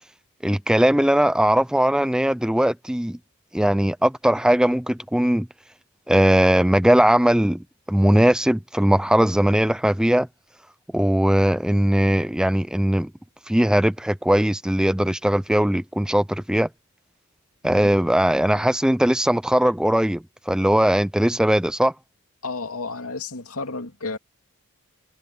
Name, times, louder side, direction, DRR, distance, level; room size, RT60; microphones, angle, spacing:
voice 1, 0.4-3.2 3.5-5.5 6.1-10.3 10.9-13.1 13.5-16.7 17.6-21.9, equal, 5° right, 0.4 m, -19 dB
voice 2, 22.4-24.2, left 3 dB, 75° left, 2.8 m, -32 dB
head